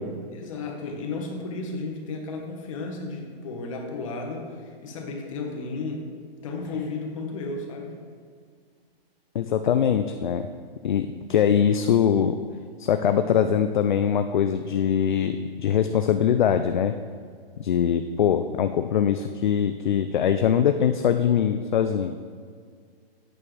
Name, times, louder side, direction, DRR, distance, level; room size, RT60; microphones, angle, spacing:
voice 1, 0.3-6.1 6.4-8.0, left 3 dB, 30° left, 2 dB, 1.3 m, -33 dB
voice 2, 9.3-10.5 10.8-12.4 12.8-16.9 17.6-22.1, left 8 dB, 50° left, 8 dB, 0.4 m, -22 dB
11.0 x 8.7 x 3.3 m, 2.1 s
hypercardioid pair, 170°, 31 cm